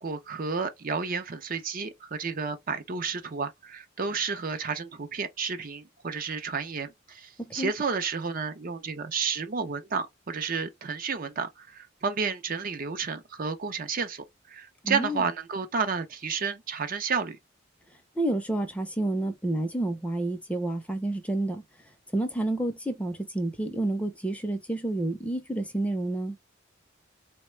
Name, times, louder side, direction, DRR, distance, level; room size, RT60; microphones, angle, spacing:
voice 1, 0.0-17.4, right 5 dB, 45° right, 0.5 m, -31 dB
voice 2, 7.4-7.7 14.8-15.2 18.2-21.6 22.1-26.4, right 1 dB, 5° left, 0.5 m, -29 dB
3.9 x 2.2 x 3.1 m
head